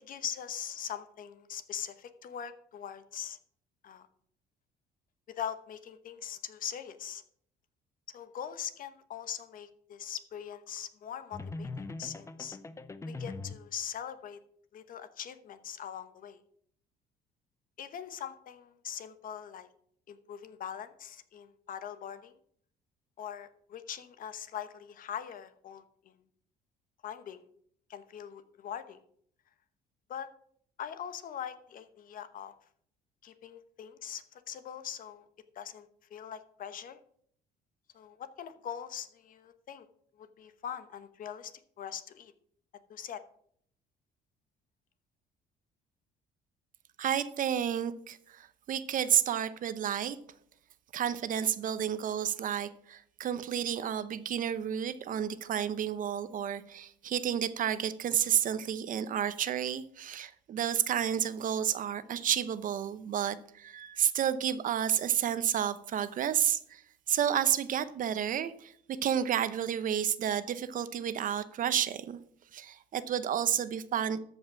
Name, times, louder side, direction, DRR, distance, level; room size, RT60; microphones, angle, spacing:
voice 1, 0.0-3.4 3.8-4.0 5.4-7.2 8.1-12.6 13.0-14.4 14.7-16.4 17.8-19.7 20.1-22.3 23.2-26.1 27.0-27.4 27.9-29.0 30.1-30.3 30.8-32.5 33.2-35.2 35.5-37.0 37.9-39.9 40.2-41.5 41.8-42.3 42.9-43.2, left 9 dB, 55° left, 11 dB, 1.0 m, -42 dB
sound 1, 11.3-13.7, left 3 dB, 15° left, 0.6 m, -41 dB
voice 2, 47.0-50.2 50.9-66.8 67.1-68.7 69.0-72.2 72.5-74.2, right 9 dB, 50° right, 14 dB, 0.8 m, -31 dB
13.5 x 5.4 x 6.1 m, 0.65 s
cardioid pair, 110°, 17 cm